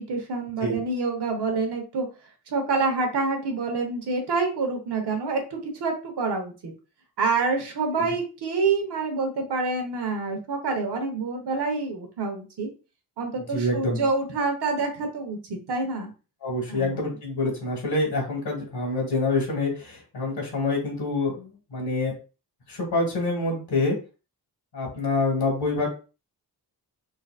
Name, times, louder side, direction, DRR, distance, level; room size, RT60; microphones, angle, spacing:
voice 1, 0.0-2.1 2.5-6.7 7.2-12.7 13.2-16.1 16.7-16.9, right 4 dB, 80° right, 3 dB, 1.1 m, -27 dB
voice 2, 13.4-14.1 16.4-22.1 22.7-24.0 24.7-25.9, left 2 dB, 75° left, 0 dB, 1.6 m, -26 dB
3.9 x 2.6 x 2.4 m, 0.33 s
cardioid pair, 95°, 40 cm